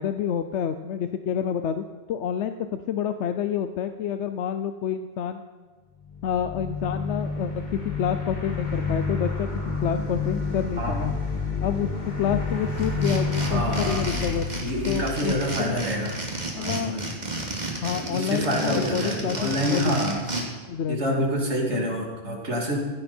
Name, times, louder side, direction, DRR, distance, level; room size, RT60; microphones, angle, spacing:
voice 1, 0.0-5.4 6.2-9.5 9.8-11.1 11.6-11.9 12.2-14.5 14.9-15.8 16.5-17.0 17.8-19.9 20.7-21.3, left 8 dB, 85° left, 9 dB, 1.0 m, -28 dB
sound 1, 6.0-16.2, left 4 dB, 40° left, 2.7 m, -29 dB
voice 2, 10.8-11.2 13.4-14.1 14.6-16.1 16.6-17.0 18.1-20.2 20.9-22.8, equal, 80° right, 0 dB, 3.2 m, -27 dB
sound 2, 12.8-20.4, right 2 dB, 40° right, 2.7 m, -32 dB
16.0 x 16.0 x 4.4 m, 1.5 s
omnidirectional pair, 1.1 m